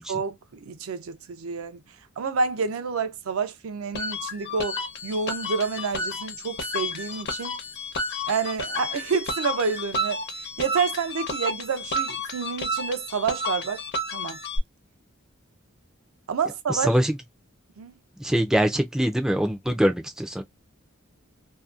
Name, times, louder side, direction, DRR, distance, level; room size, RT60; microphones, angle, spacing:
voice 1, 0.1-1.8 2.2-7.6 8.3-10.2 10.6-13.8 14.1-14.4 16.3-16.9 17.8-17.9, right 5 dB, 75° right, 0.5 m, -28 dB
sound 1, 3.9-14.6, left 1 dB, 55° left, 0.8 m, -31 dB
voice 2, 16.7-17.2 18.2-20.4, equal, 5° right, 0.4 m, -23 dB
2.7 x 2.1 x 2.3 m
head